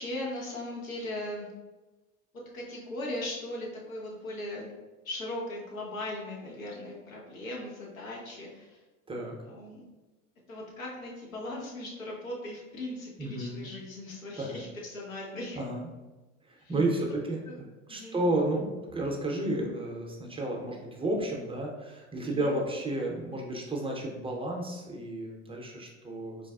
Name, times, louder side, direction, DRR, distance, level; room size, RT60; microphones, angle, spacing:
voice 1, 0.0-1.5 2.5-4.7 5.0-8.8 9.4-9.8 10.5-15.6 16.6-16.8 17.5-17.6 17.9-18.2 22.3-22.5, left 1 dB, 85° left, -2 dB, 0.9 m, -38 dB
voice 2, 13.2-13.7 14.4-14.6 15.6-15.9 16.5-17.4 17.9-26.5, right 1 dB, 15° right, -1 dB, 0.6 m, -32 dB
4.1 x 2.2 x 2.3 m, 1.1 s
hypercardioid pair, 70°, 39 cm